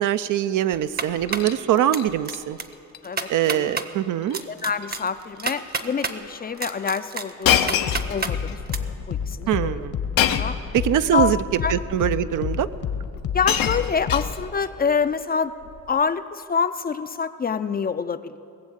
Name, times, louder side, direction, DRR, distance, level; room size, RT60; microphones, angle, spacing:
voice 1, 0.0-2.6 3.3-4.4 9.5-9.9 10.8-11.4 11.7-12.7, right 11 dB, 70° right, 13 dB, 0.6 m, -23 dB
sound 1, 0.7-1.5 1.9-2.3 2.6-2.7 3.0-3.9 4.3-6.2 6.6-8.3 8.7-8.8, right 4 dB, 30° right, 0.8 m, -29 dB
Shatter, 1.1-1.6 1.9-2.4 2.7-3.0 3.3-3.4 4.2-4.5 4.8-5.1 5.8-5.9 7.4-8.6 10.2-10.7 11.7-11.8 12.8-12.9 13.2-14.7 15.6-15.9, left 10 dB, 85° left, 0.7 m, -25 dB
voice 2, 3.0-3.7 4.5-9.8 10.4-10.6 11.0-11.7 13.3-15.5 15.9-18.4, left 6 dB, 30° left, 12 dB, 0.4 m, -26 dB
sound 2, 5.8-14.5, left 7 dB, 65° left, 1.2 m, -31 dB
19.5 x 7.5 x 8.0 m, 2.6 s
cardioid pair, 100°, 33 cm